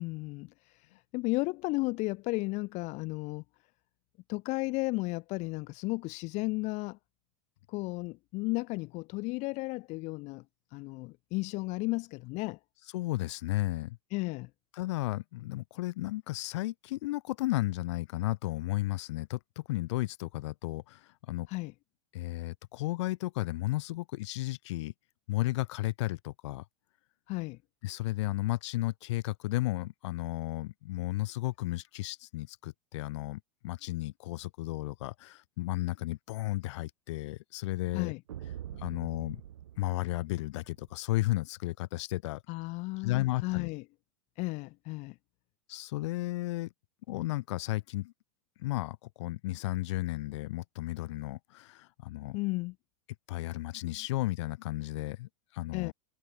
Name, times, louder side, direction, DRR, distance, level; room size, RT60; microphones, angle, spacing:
voice 1, 0.0-3.4 4.3-7.0 7.7-10.4 10.7-12.6 14.1-14.5 21.5-21.7 27.3-27.6 37.9-38.2 42.5-43.8 44.4-45.2 52.3-52.7 55.7-55.9, left 24 dB, 45° left, 1.9 m, -34 dB
voice 2, 12.9-14.0 14.7-21.5 22.1-24.9 25.3-26.6 27.8-38.1 38.8-39.4 39.8-42.4 43.0-43.7 45.7-46.7 47.1-48.1 48.6-52.4 53.3-55.9, left 18 dB, 65° left, 4.0 m, -34 dB
sound 1, 38.3-40.9, right 11 dB, 85° right, 6.0 m, -45 dB
hypercardioid pair, 125°, 16 cm